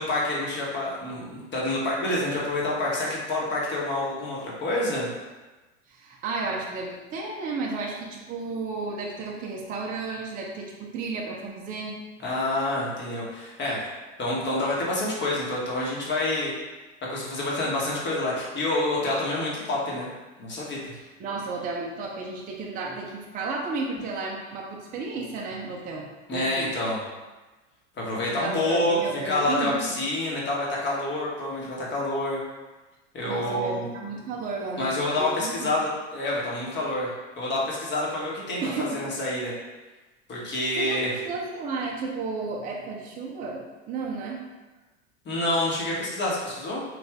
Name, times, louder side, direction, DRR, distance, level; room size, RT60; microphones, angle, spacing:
voice 1, 0.0-5.1 12.2-13.8 14.2-16.5 17.1-20.1 20.4-20.8 26.3-27.0 28.0-29.0 29.2-32.4 33.1-33.9 34.8-37.1 37.4-39.5 40.3-41.1 45.2-46.8, left 1 dB, 30° left, -4 dB, 1.2 m, -27 dB
voice 2, 5.9-12.0 21.2-26.1 26.3-26.7 28.3-30.0 33.2-35.7 38.6-39.0 40.4-44.4, right 3 dB, 25° right, -1 dB, 0.5 m, -33 dB
3.3 x 2.5 x 3.5 m, 1.2 s
hypercardioid pair, 100°, 37 cm